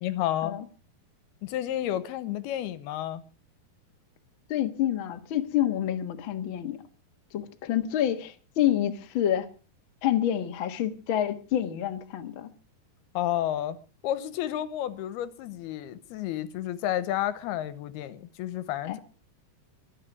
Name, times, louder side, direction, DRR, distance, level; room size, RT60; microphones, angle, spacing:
voice 1, 0.0-0.6 1.4-3.2 13.1-13.8 14.0-19.0, left 12 dB, 85° left, 2.9 m, -31 dB
voice 2, 4.5-6.8 7.3-9.5 10.0-12.5 18.8-19.0, left 11 dB, 70° left, 1.2 m, -28 dB
23.0 x 8.5 x 6.1 m
omnidirectional pair, 4.6 m